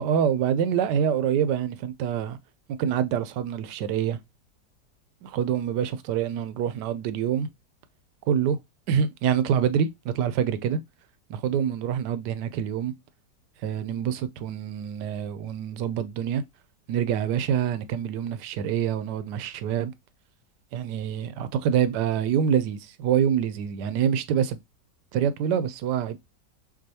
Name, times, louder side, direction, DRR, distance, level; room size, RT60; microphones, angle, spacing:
voice 1, 0.0-2.4 2.8-4.2 5.3-7.5 8.3-8.6 8.9-10.8 11.4-12.9 13.6-16.4 16.9-19.9 20.7-24.6 25.1-26.2, right 8 dB, 80° right, 1.2 m, -26 dB
6.0 x 2.7 x 2.8 m
omnidirectional pair, 1.9 m